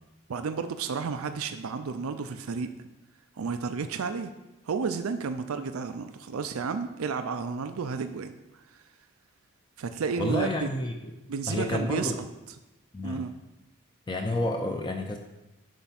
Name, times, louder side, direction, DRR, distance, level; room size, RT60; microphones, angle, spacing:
voice 1, 0.3-2.8 3.4-4.3 4.7-8.6 9.8-10.7 11.3-12.3 13.0-13.3, right 5 dB, 90° right, 9 dB, 0.5 m, -32 dB
voice 2, 10.2-11.1 11.5-12.1 12.9-13.2 14.1-15.2, left 1 dB, 20° left, 3 dB, 0.5 m, -30 dB
10.0 x 3.4 x 5.8 m, 1.0 s
head